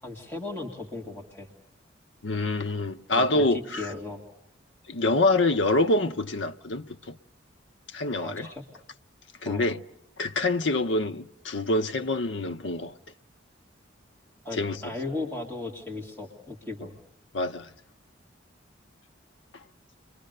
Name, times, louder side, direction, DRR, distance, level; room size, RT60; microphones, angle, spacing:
voice 1, 0.0-1.5 3.2-4.2 8.2-8.7 9.4-9.7 14.4-17.0, left 2 dB, 10° left, 2.1 m, -36 dB
voice 2, 2.2-3.9 4.9-7.2 7.9-8.5 9.4-9.8 10.2-12.9 14.5-14.8 17.3-17.7, left 2 dB, 70° left, 0.8 m, -26 dB
30.0 x 22.5 x 6.6 m
head